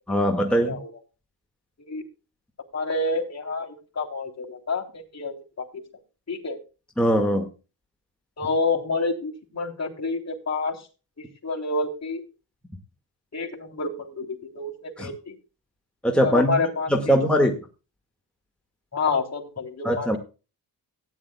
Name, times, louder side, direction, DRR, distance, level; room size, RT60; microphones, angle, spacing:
voice 1, 0.1-0.8 7.0-7.5 15.0-15.1 16.0-16.5 16.9-17.5 19.8-20.2, equal, ahead, 2 dB, 1.9 m, -21 dB
voice 2, 2.7-5.7 6.3-6.6 8.4-10.8 11.2-12.2 13.3-15.4 16.2-17.1 18.9-20.1, left 3 dB, 35° left, 0 dB, 3.5 m, -28 dB
17.5 x 10.5 x 2.3 m, 0.32 s
wide cardioid pair, 105°, 43 cm